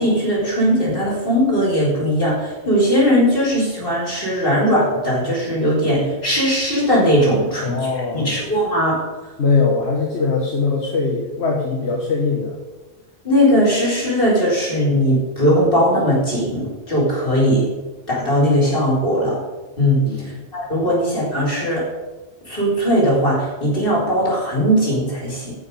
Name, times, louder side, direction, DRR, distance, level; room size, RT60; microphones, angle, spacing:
voice 1, 0.0-9.0 13.2-17.7 18.1-19.4 19.8-20.0 20.5-21.8 22.5-25.5, equal, 55° left, -6 dB, 4.6 m, -19 dB
voice 2, 7.6-8.5 9.4-12.6 20.0-20.4, left 4 dB, 80° left, -2 dB, 1.7 m, -21 dB
13.5 x 6.2 x 5.4 m, 1.2 s
omnidirectional pair, 1.1 m